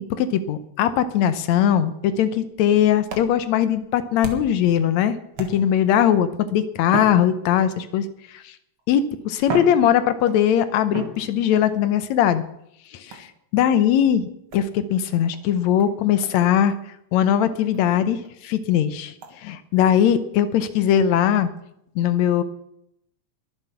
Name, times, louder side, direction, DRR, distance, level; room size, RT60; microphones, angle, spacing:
voice 1, 0.0-8.1 8.3-8.5 8.9-12.4 12.9-13.3 13.5-14.2 14.5-16.7 17.1-19.1 19.4-21.5 22.0-22.4, left 9 dB, 75° left, 12 dB, 2.0 m, -20 dB
sound 1, 2.5-4.7 5.3-5.9 6.8-7.9 8.8-8.9 9.4-10.5 10.9-11.7 13.1-13.4 14.5-14.7 15.3-15.4 15.8-15.9 16.2-16.4 16.7-16.8 17.2-17.3 17.7-17.8 18.2-18.3 19.2-19.3, right 3 dB, 50° right, 2.3 m, -34 dB
21.5 x 7.5 x 5.8 m, 0.76 s
omnidirectional pair, 3.3 m